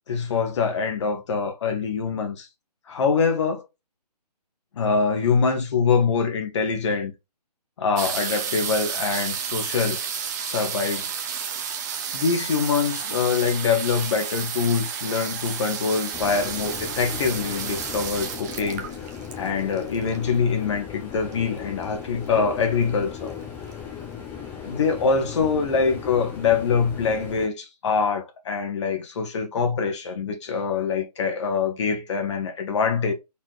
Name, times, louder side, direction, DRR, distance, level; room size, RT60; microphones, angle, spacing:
voice 1, 0.1-2.5 2.9-3.7 4.8-7.1 7.8-10.0 10.4-11.1 12.1-18.8 19.3-23.3 24.7-33.1, left 5 dB, 45° left, 1.2 m, -24 dB
sound 1, 8.0-20.5 21.3-21.4 21.6-22.0 22.3-22.9 23.4-23.5 23.7-23.8, right 7 dB, 25° right, 0.8 m, -31 dB
sound 2, 16.1-27.5, left 7 dB, 10° left, 0.7 m, -37 dB
4.1 x 3.8 x 3.1 m
figure-of-eight pair, 140°, 21 cm